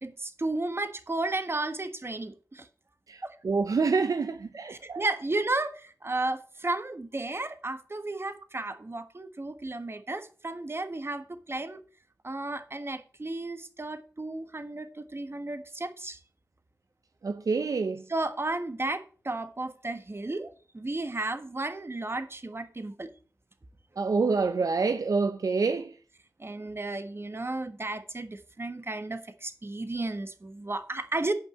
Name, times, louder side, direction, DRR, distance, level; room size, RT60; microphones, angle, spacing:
voice 1, 0.0-2.7 3.2-3.4 4.7-11.8 12.2-16.2 18.1-23.1 26.4-31.3, right 2 dB, 40° right, 1.4 m, -33 dB
voice 2, 3.1-5.0 17.2-18.0 24.0-25.9, right 4 dB, 70° right, 0.6 m, -27 dB
9.1 x 5.5 x 6.9 m
cardioid pair, 40°, 6 cm